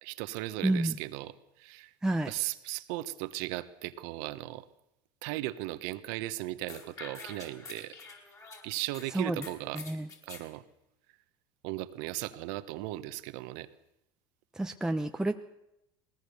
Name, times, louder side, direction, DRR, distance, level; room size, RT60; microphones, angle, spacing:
voice 1, 0.0-1.9 2.3-4.6 5.2-7.9 8.6-9.8 10.3-10.6 11.6-13.7, right 17 dB, 70° right, 13 dB, 1.2 m, -37 dB
voice 2, 0.6-1.0 2.0-2.3 9.1-9.4 9.7-10.1 14.5-15.4, right 1 dB, 5° right, 5 dB, 0.9 m, -29 dB
sound 1, 6.7-9.1 9.4-10.5, left 4 dB, 30° left, 4.8 m, -46 dB
20.0 x 18.5 x 6.9 m, 0.85 s
hypercardioid pair, 90°, 11 cm